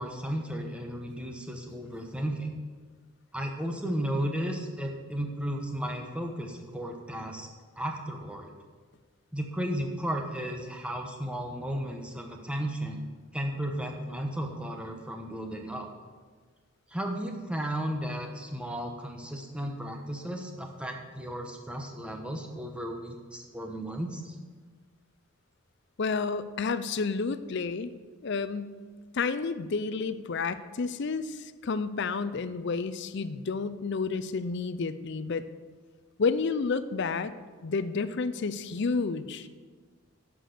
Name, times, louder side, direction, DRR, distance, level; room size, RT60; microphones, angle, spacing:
voice 1, 0.0-2.6 3.3-7.5 7.8-8.5 9.3-13.0 13.3-15.9 16.9-24.4, equal, 5° right, 3 dB, 1.0 m, -34 dB
voice 2, 26.0-27.9 28.2-28.8 29.1-35.5 36.2-37.3 37.6-39.5, left 4 dB, 50° left, 13 dB, 0.5 m, -30 dB
10.0 x 6.1 x 6.6 m, 1.5 s
head